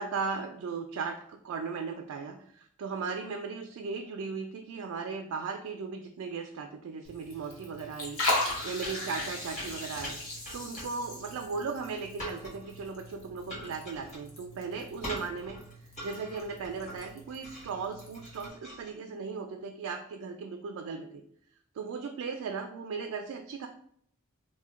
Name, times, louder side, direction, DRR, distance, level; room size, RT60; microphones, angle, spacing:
voice 1, 0.0-10.2 10.5-15.6 16.0-21.2 21.7-23.7, right 5 dB, 85° right, 4 dB, 0.3 m, -37 dB
Liquid, 7.0-18.5, left 2 dB, 85° left, 0.9 m, -38 dB
sound 1, 8.5-18.9, equal, 35° left, 1.4 m, -43 dB
2.8 x 2.1 x 3.5 m, 0.64 s
head